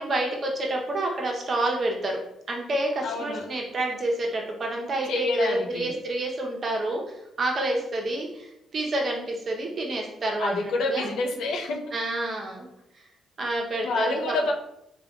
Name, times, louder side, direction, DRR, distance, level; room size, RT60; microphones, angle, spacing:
voice 1, 0.0-2.2 2.5-10.5 10.9-11.1 11.9-12.7 13.4-14.2, right 2 dB, 45° right, 0 dB, 0.8 m, -28 dB
voice 2, 3.0-3.6 5.1-5.9 10.4-12.0 13.8-14.5, left 3 dB, 75° left, 3 dB, 0.5 m, -28 dB
3.3 x 2.3 x 3.5 m, 0.81 s
cardioid pair, 90°, 0 cm